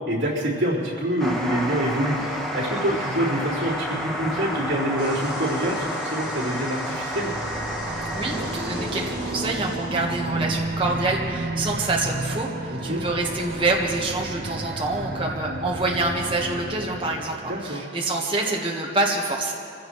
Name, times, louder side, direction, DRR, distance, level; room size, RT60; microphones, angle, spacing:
voice 1, 0.1-2.2 2.5-7.3 12.7-13.0 17.4-17.9, right 1 dB, 65° right, -7 dB, 4.2 m, -26 dB
sound 1, 1.2-14.1, equal, ahead, 1.3 m, -32 dB
sound 2, 2.1-16.1, left 1 dB, 65° left, 3.8 m, -40 dB
sound 3, 7.1-17.7, right 2 dB, 45° right, 0.5 m, -32 dB
voice 2, 8.1-19.5, right 2 dB, 25° right, -2 dB, 1.4 m, -26 dB
25.0 x 16.0 x 3.2 m, 2.5 s
head